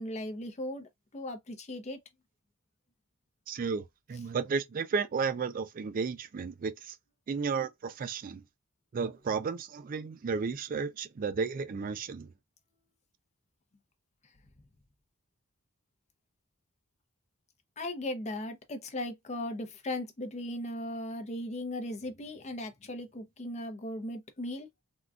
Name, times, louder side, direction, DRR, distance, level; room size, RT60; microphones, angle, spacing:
voice 1, 0.0-2.0 17.8-24.7, left 1 dB, 35° left, 0.6 m, -37 dB
voice 2, 3.5-7.0 7.3-8.4 8.9-12.3, right 5 dB, 40° right, 0.3 m, -33 dB
3.7 x 2.3 x 2.3 m
head